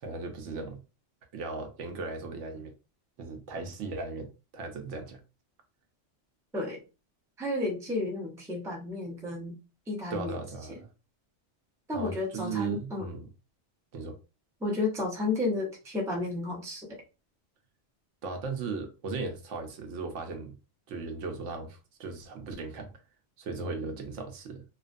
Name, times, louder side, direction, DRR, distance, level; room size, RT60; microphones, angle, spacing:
voice 1, 0.0-0.8 1.3-2.7 3.2-5.2 10.1-10.9 11.9-13.3 13.9-14.2 18.2-20.6 20.9-22.9 23.4-24.6, right 3 dB, 80° right, 0.9 m, -37 dB
voice 2, 7.4-9.6 9.9-10.3 10.7-10.8 11.9-13.1 14.6-16.9, left 2 dB, 5° right, 0.4 m, -32 dB
2.5 x 2.2 x 2.4 m
omnidirectional pair, 1.2 m